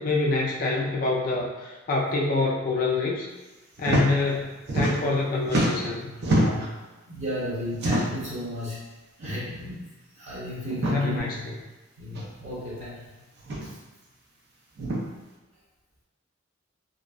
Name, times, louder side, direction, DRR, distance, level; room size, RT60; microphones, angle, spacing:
voice 1, 0.0-3.3 3.8-6.7 10.9-11.6, left 3 dB, 45° left, -2 dB, 0.3 m, -26 dB
sound 1, 3.8-4.1 4.3-5.2 5.4-6.7 7.7-8.3 9.2-9.4 9.7-9.8 10.7-11.0 12.1-12.2 13.4-13.7 14.8-15.0, right 1 dB, 55° right, 0.5 m, -26 dB
voice 2, 7.1-8.8 9.2-9.8 10.2-11.2 12.0-13.0 13.6-13.7, equal, 35° right, -9 dB, 0.9 m, -33 dB
2.5 x 2.1 x 2.3 m, 1.2 s
head